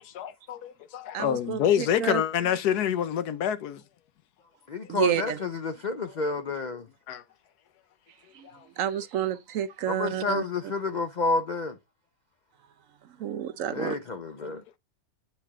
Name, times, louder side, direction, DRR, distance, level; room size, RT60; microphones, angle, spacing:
voice 1, 0.0-3.8 7.1-7.2 8.4-8.6, left 10 dB, 85° left, 1.3 m, -27 dB
voice 2, 1.1-2.2 4.9-5.4 8.4-8.5 8.8-10.4 13.2-13.9, right 10 dB, 65° right, 0.9 m, -29 dB
voice 3, 4.7-6.9 9.9-11.8 13.7-14.6, left 3 dB, 60° left, 0.4 m, -30 dB
8.1 x 4.1 x 3.6 m
omnidirectional pair, 1.6 m